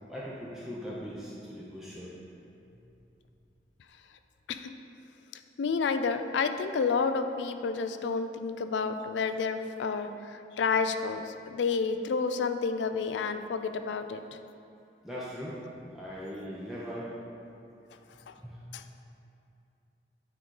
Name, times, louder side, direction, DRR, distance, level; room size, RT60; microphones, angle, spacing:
voice 1, 0.1-2.1 15.0-17.2 18.1-18.6, equal, ahead, -7 dB, 0.6 m, -40 dB
voice 2, 5.6-14.2 18.3-18.4 18.7-18.8, left 5 dB, 80° left, 9 dB, 0.4 m, -30 dB
8.8 x 3.8 x 3.8 m, 2.7 s
head